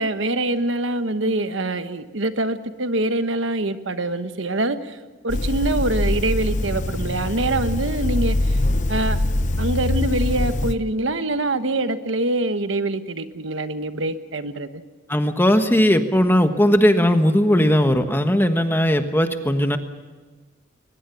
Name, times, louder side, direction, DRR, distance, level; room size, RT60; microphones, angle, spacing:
voice 1, 0.0-5.0 5.2-8.6 8.9-9.2 9.6-14.8, right 2 dB, 75° right, 10 dB, 1.2 m, -24 dB
sound 1, 5.3-10.8, left 1 dB, 40° left, 0.8 m, -23 dB
voice 2, 15.1-19.8, equal, 10° left, 7 dB, 1.3 m, -18 dB
22.5 x 20.0 x 7.1 m, 1.3 s
head